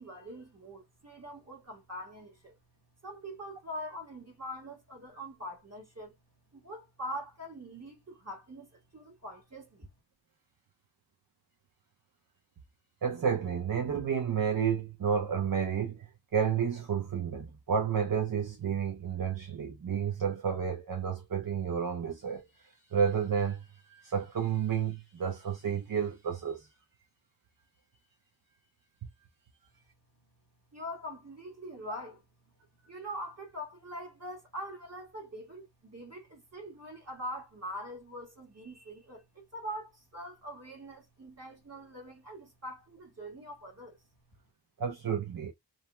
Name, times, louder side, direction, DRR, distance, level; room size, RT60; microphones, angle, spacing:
voice 1, 0.0-2.6 3.0-6.1 6.5-9.9 30.7-32.2 32.9-44.0, equal, 40° right, 1.6 m, -43 dB
voice 2, 13.0-16.1 16.3-26.7 44.8-45.5, right 7 dB, 55° right, 0.7 m, -31 dB
2.7 x 2.2 x 2.9 m
wide cardioid pair, 60°, 41 cm